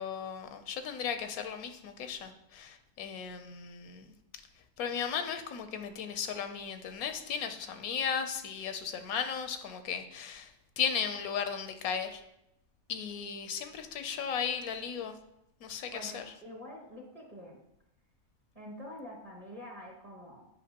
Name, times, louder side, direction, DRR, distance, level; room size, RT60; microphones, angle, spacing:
voice 1, 0.0-4.1 4.8-12.2 12.9-15.2 15.6-16.3, left 7 dB, 85° left, 8 dB, 1.1 m, -36 dB
voice 2, 15.9-17.6 18.5-20.5, equal, 25° right, -1 dB, 1.2 m, -46 dB
8.3 x 5.3 x 2.8 m, 0.84 s
omnidirectional pair, 1.5 m